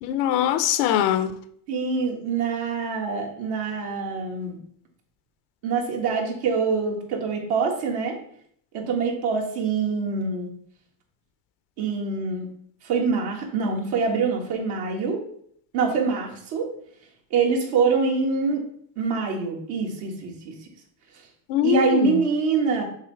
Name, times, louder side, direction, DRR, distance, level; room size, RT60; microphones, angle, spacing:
voice 1, 0.0-1.3 21.5-22.2, left 11 dB, 80° left, 0.7 m, -22 dB
voice 2, 1.7-4.6 5.6-8.2 8.7-10.5 11.8-12.5 12.8-15.2 15.7-16.7 17.3-18.6 19.0-20.5 21.6-22.8, right 5 dB, 70° right, 1.8 m, -25 dB
6.8 x 3.1 x 4.7 m
cardioid pair, 105°, 41 cm